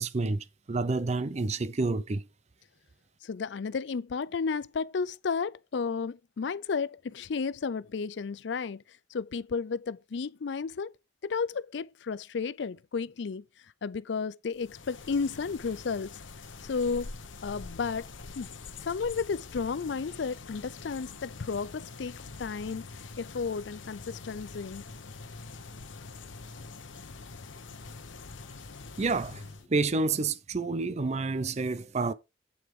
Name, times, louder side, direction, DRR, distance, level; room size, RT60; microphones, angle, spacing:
voice 1, 0.0-2.3 29.0-32.1, right 3 dB, 35° right, 0.5 m, -29 dB
voice 2, 3.2-10.9 11.2-13.4 13.8-16.2 16.6-17.1 17.4-18.1 18.4-18.5 18.8-22.8 23.2-24.8, left 5 dB, 60° left, 0.4 m, -33 dB
sound 1, 14.5-29.7, left 3 dB, 80° left, 1.0 m, -45 dB
8.6 x 7.8 x 3.7 m
head